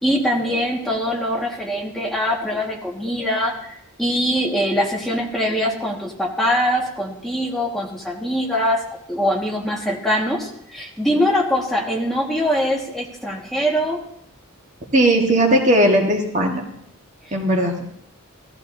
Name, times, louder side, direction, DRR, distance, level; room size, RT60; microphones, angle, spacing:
voice 1, 0.0-8.8 9.1-14.0 17.2-17.4, equal, ahead, -3 dB, 1.7 m, -23 dB
voice 2, 14.9-16.6 17.3-17.8, right 1 dB, 35° right, 0 dB, 1.5 m, -17 dB
17.5 x 14.0 x 2.7 m, 0.72 s
head